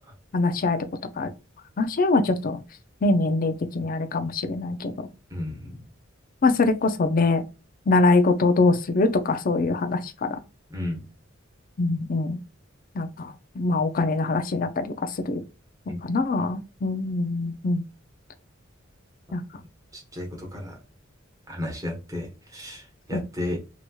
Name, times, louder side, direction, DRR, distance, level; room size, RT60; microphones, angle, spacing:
voice 1, 0.3-0.9 1.2-1.3 1.8-2.6 3.0-5.1 6.4-7.4 7.9-10.4 11.8-12.4 13.0-15.4 16.0-17.8 19.3-19.4 23.1-23.2, left 3 dB, 45° left, 0.5 m, -23 dB
voice 2, 5.3-5.8 10.7-11.0 15.9-16.0 19.9-20.8 21.5-23.6, left 1 dB, 15° right, 1.0 m, -33 dB
2.9 x 2.9 x 2.2 m
head